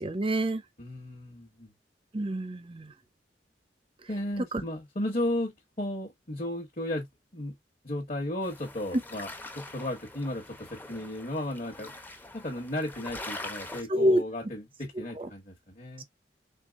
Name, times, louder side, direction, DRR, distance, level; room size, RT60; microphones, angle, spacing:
voice 1, 0.0-0.6 2.1-2.9 13.9-14.2 15.2-15.3, equal, 30° right, 0.6 m, -26 dB
voice 2, 0.8-1.7 4.1-7.1 7.3-7.5 7.8-11.9 12.3-16.0, left 1 dB, 40° left, 1.2 m, -34 dB
sound 1, 8.4-13.8, left 2 dB, 10° left, 0.7 m, -43 dB
4.5 x 3.5 x 2.3 m
head